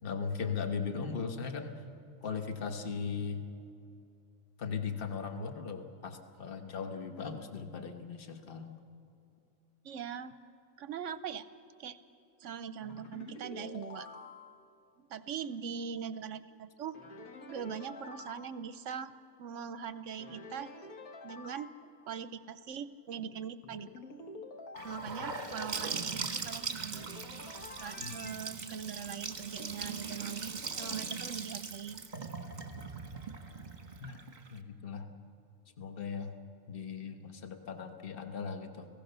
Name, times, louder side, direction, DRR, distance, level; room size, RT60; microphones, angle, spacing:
voice 1, 0.0-1.8 2.2-3.4 4.6-8.8 28.0-28.1 34.0-34.2 34.5-35.1 35.8-36.3 36.7-38.9, left 5 dB, 40° left, 6 dB, 1.4 m, -38 dB
voice 2, 9.8-10.4 10.8-11.5 11.8-12.0 12.4-14.1 15.0-17.0 17.5-19.1 19.4-20.9 21.2-23.9 24.8-27.1 27.8-32.0, right 7 dB, 65° right, 14 dB, 1.0 m, -41 dB
sound 1, 12.8-14.7 16.9-18.5 20.2-21.8 23.6-25.1 26.9-28.4, left 3 dB, 85° left, 1.8 m, -48 dB
Gurgling / Sink (filling or washing) / Bathtub (filling or washing), 24.8-34.6, right 4 dB, 30° right, 1.3 m, -40 dB
29.5 x 17.5 x 6.8 m, 2.7 s
omnidirectional pair, 1.5 m